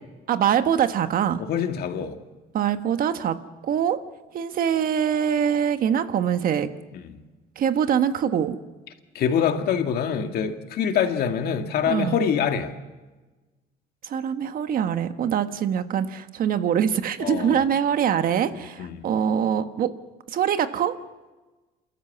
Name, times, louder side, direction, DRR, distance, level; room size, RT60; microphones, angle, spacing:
voice 1, 0.3-1.4 2.5-3.4 3.6-4.0 4.3-6.7 7.6-8.6 11.9-12.2 14.0-19.9 20.3-20.9, right 8 dB, 60° right, 9 dB, 1.4 m, -23 dB
voice 2, 1.4-2.2 6.9-7.1 9.1-12.7 17.2-17.6 18.5-19.1, left 7 dB, 65° left, 5 dB, 2.1 m, -25 dB
28.0 x 13.5 x 8.5 m, 1.2 s
cardioid pair, 110°, 17 cm